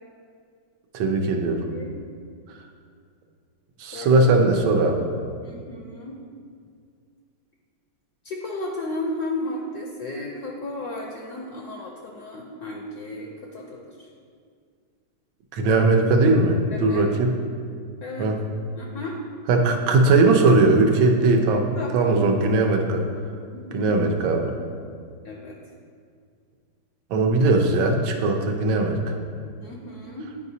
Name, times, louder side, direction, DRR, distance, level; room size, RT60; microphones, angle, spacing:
voice 1, 0.9-1.6 3.8-5.0 15.5-17.3 18.2-18.4 19.5-21.7 21.9-23.0 23.7-24.5 27.1-29.1, right 3 dB, 80° right, 3 dB, 1.5 m, -19 dB
voice 2, 3.9-4.2 5.4-6.2 8.2-14.1 16.7-17.0 18.0-18.3 18.8-19.2 21.7-22.3 23.5-23.9 25.2-25.6 29.6-30.3, left 2 dB, 70° left, 0 dB, 1.0 m, -34 dB
9.5 x 4.8 x 2.7 m, 2.2 s
omnidirectional pair, 2.2 m